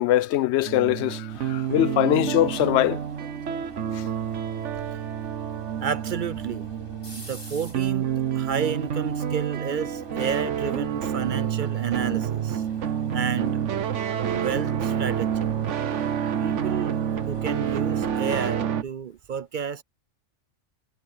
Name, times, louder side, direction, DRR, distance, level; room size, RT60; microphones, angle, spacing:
voice 1, 0.0-3.0 3.9-4.0, left 13 dB, 70° left, 0.8 m, -22 dB
sound 1, 0.6-18.8, right 9 dB, 75° right, 1.3 m, -28 dB
sound 2, 1.3-18.3, left 1 dB, 50° left, 8.1 m, -49 dB
voice 2, 5.8-6.7 7.1-8.1 8.4-12.6 13.1-13.6 14.2-15.5 16.4-17.0 17.3-19.8, right 7 dB, 55° right, 0.6 m, -31 dB
omnidirectional pair, 1.2 m